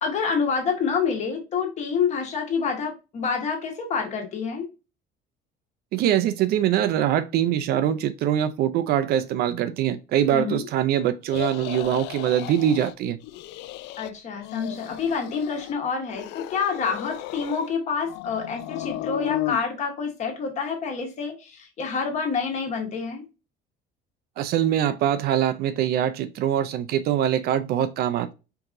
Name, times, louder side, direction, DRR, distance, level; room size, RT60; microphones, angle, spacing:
voice 1, 0.0-4.7 10.3-10.7 14.0-23.3, left 5 dB, 40° left, 1.4 m, -27 dB
voice 2, 5.9-13.2 24.4-28.3, right 10 dB, 55° right, 0.5 m, -23 dB
sound 1, 11.3-12.9 13.2-14.1 14.4-15.8 16.1-17.7 18.1-19.6, left 15 dB, 65° left, 0.4 m, -34 dB
4.6 x 3.8 x 2.6 m
cardioid pair, 170°, 19 cm